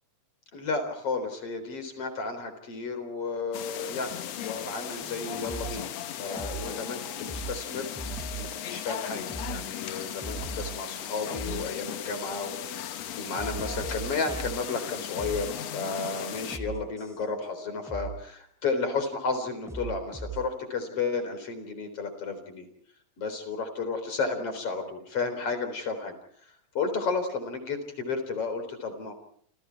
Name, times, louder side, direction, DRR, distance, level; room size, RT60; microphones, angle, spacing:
voice 1, 0.5-5.9 6.2-22.7 23.2-26.1 26.4-29.1, left 4 dB, 40° left, 9 dB, 4.8 m, -33 dB
sound 1, 3.5-16.6, left 11 dB, 60° left, 1.9 m, -37 dB
sound 2, 4.9-5.8 6.4-7.6 7.9-9.6 10.0-11.0 11.3-12.9 13.3-18.3 19.0-20.5, right 4 dB, ahead, 5.7 m, -40 dB
29.0 x 28.5 x 4.7 m, 0.63 s
omnidirectional pair, 4.0 m